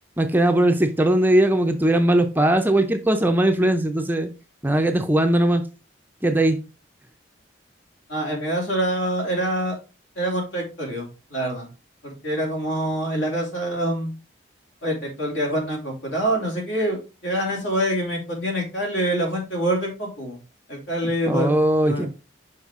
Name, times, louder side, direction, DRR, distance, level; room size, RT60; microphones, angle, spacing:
voice 1, 0.2-4.3 4.6-5.6 6.2-6.6 21.3-22.1, right 1 dB, 10° right, 0.4 m, -19 dB
voice 2, 8.1-9.8 10.2-11.7 12.0-14.1 14.8-20.4 20.7-22.1, right 1 dB, 70° left, 2.7 m, -26 dB
5.7 x 5.3 x 3.6 m
head